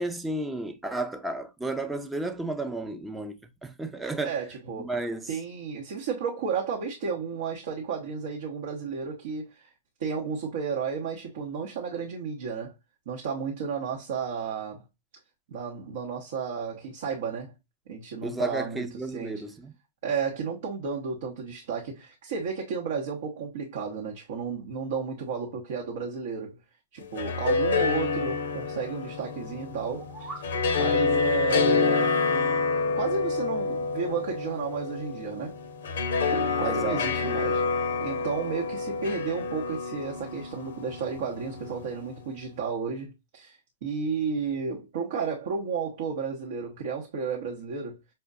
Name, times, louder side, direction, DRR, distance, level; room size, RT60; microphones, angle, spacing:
voice 1, 0.0-4.4 4.8-5.2 18.2-19.7 36.6-37.1, right 2 dB, 5° right, 0.5 m, -32 dB
voice 2, 4.2-5.0 5.3-9.7 10.0-12.7 13.1-14.8 15.5-17.5 17.9-18.8 19.1-19.4 20.0-26.6 26.9-30.3 30.8-32.6 32.9-35.5 36.3-48.0, right 5 dB, 60° right, 0.8 m, -33 dB
sound 1, 27.0-42.2, left 4 dB, 65° left, 0.6 m, -28 dB
sound 2, 29.8-30.5, right 3 dB, 30° right, 0.9 m, -42 dB
5.5 x 2.1 x 2.4 m
hypercardioid pair, 110°, 0 cm